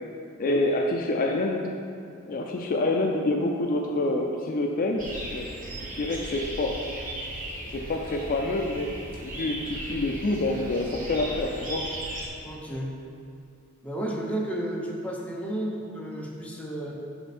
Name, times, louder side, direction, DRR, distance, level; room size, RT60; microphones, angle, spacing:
voice 1, 0.4-1.7 2.3-5.0 5.3-5.5 6.0-6.8 7.7-11.9, left 2 dB, 45° left, 2 dB, 0.4 m, -27 dB
sound 1, 5.0-12.3, right 1 dB, 40° right, 1.1 m, -37 dB
voice 2, 12.4-12.9 13.8-16.9, right 1 dB, 5° left, -2 dB, 0.8 m, -32 dB
6.8 x 5.5 x 4.2 m, 2.5 s
head